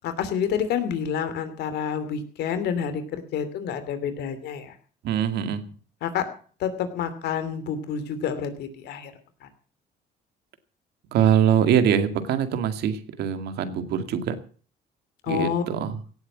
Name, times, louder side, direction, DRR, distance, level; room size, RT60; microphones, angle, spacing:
voice 1, 0.0-4.8 6.0-6.3 6.6-9.1 9.4-9.5 15.2-15.6, left 7 dB, 75° left, 10 dB, 2.8 m, -28 dB
voice 2, 5.0-5.6 11.1-14.4 15.3-16.0, right 8 dB, 75° right, 9 dB, 2.2 m, -23 dB
17.5 x 8.2 x 7.5 m, 0.42 s
cardioid pair, 110°, 17 cm